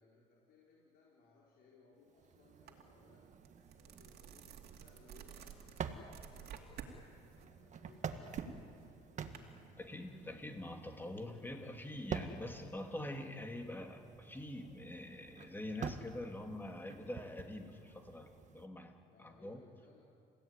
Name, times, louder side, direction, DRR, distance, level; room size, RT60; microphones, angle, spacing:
voice 1, 0.0-3.3 3.7-8.8 19.1-20.0, left 4 dB, 70° left, -5 dB, 5.4 m, -66 dB
sound 1, 2.1-18.7, right 6 dB, 45° right, 1.8 m, -49 dB
sound 2, 2.7-2.8 3.2-7.0 7.3-9.4, right 8 dB, 70° right, 2.7 m, -50 dB
voice 2, 9.8-19.7, left 1 dB, 10° left, 4 dB, 2.6 m, -45 dB
29.0 x 16.5 x 9.9 m, 2.5 s
cardioid pair, 110°, 17 cm